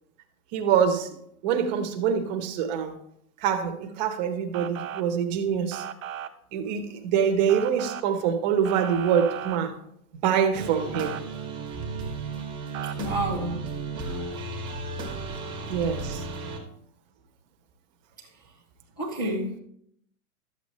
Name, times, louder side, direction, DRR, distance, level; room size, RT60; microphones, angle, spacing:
voice 1, 0.5-1.1 1.4-3.0 3.4-5.8 6.5-9.8 10.2-11.2 15.7-16.2, right 7 dB, 30° right, 1.0 m, -25 dB
Motor vehicle (road) / Siren, 4.5-5.0 5.7-6.3 7.5-8.0 8.6-9.6 10.9-11.2 12.7-12.9, right 10 dB, 60° right, 0.9 m, -35 dB
sound 1, 10.5-16.6, right 3 dB, 10° right, 1.2 m, -34 dB
voice 2, 12.8-13.7 19.0-19.6, right 1 dB, 15° left, 0.3 m, -30 dB
12.5 x 8.1 x 3.2 m
hypercardioid pair, 160°, 44 cm